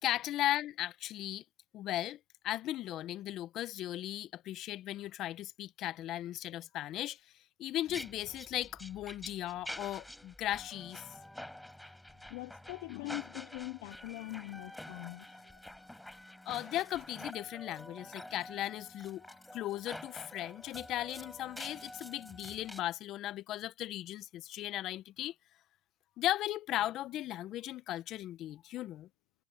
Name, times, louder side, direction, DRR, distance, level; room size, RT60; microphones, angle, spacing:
voice 1, 0.0-1.4 1.7-2.2 2.4-7.2 7.6-11.0 16.4-25.3 26.2-29.1, left 14 dB, 45° left, 1.3 m, -37 dB
sound 1, 7.9-22.8, left 1 dB, 5° left, 5.2 m, -48 dB
voice 2, 12.3-15.9, left 25 dB, 60° left, 0.7 m, -43 dB
hypercardioid pair, 105°, 0 cm